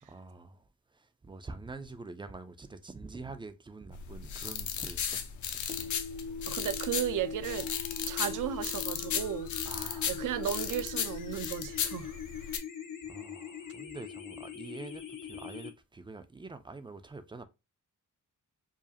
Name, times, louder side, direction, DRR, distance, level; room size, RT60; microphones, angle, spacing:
voice 1, 0.1-0.6 0.9-5.2 5.6-5.8 9.7-10.2 13.1-17.4, right 3 dB, 15° right, 0.3 m, -46 dB
sound 1, 3.9-12.6, left 8 dB, 65° left, 0.6 m, -36 dB
sound 2, 5.7-15.7, left 7 dB, 85° left, 1.1 m, -42 dB
voice 2, 6.5-7.7 8.1-9.5 10.1-12.1, right 11 dB, 75° right, 0.5 m, -34 dB
4.8 x 2.4 x 2.6 m
wide cardioid pair, 170°, 32 cm